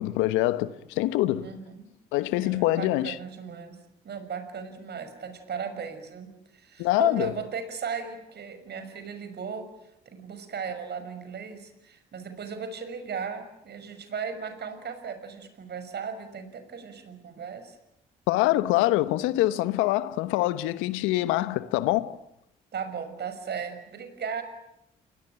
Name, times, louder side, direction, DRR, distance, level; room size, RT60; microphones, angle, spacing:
voice 1, 0.0-1.5 2.1-3.2 6.8-7.3 18.3-22.2, left 16 dB, 80° left, 1.1 m, -25 dB
voice 2, 1.4-1.9 2.3-3.8 4.0-9.7 10.1-17.8 22.7-24.4, right 6 dB, 55° right, 6.1 m, -36 dB
29.0 x 21.5 x 8.9 m
hypercardioid pair, 50°, 20 cm